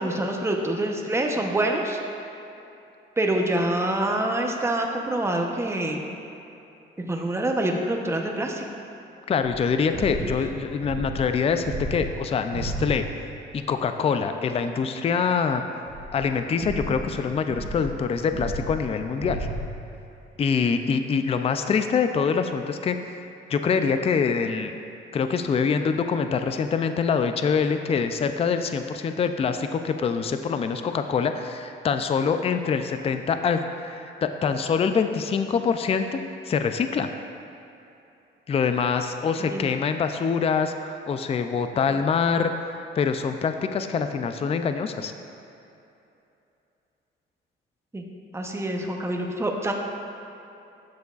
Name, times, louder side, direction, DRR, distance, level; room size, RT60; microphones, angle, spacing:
voice 1, 0.0-2.0 3.2-6.0 7.0-8.7 10.2-10.4 39.4-39.7 47.9-48.0 48.3-49.7, right 1 dB, 15° right, 1 dB, 0.8 m, -26 dB
voice 2, 9.3-13.0 13.5-15.6 16.1-19.5 20.4-23.2 23.5-24.8 25.1-36.2 36.5-37.1 38.5-45.1, left 6 dB, 30° left, 8 dB, 0.4 m, -25 dB
sound 1, 9.4-13.3 14.0-14.1 15.9-20.0, right 1 dB, 60° right, 0.9 m, -34 dB
10.5 x 7.0 x 2.4 m, 2.8 s
cardioid pair, 90°, 20 cm